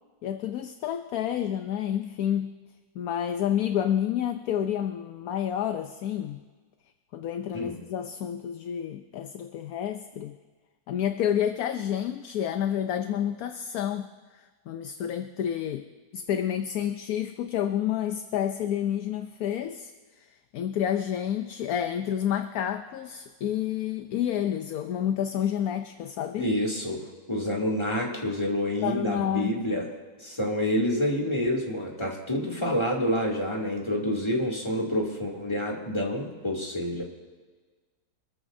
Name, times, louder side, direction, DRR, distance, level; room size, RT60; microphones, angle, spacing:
voice 1, 0.2-2.6 3.0-6.4 7.1-10.4 10.9-14.1 14.3-19.9 20.2-26.5 28.8-29.9, left 10 dB, 70° left, 8 dB, 1.1 m, -29 dB
voice 2, 26.4-29.8 30.2-37.0, equal, 15° left, -2 dB, 2.5 m, -28 dB
25.0 x 14.5 x 2.7 m, 1.4 s
omnidirectional pair, 1.7 m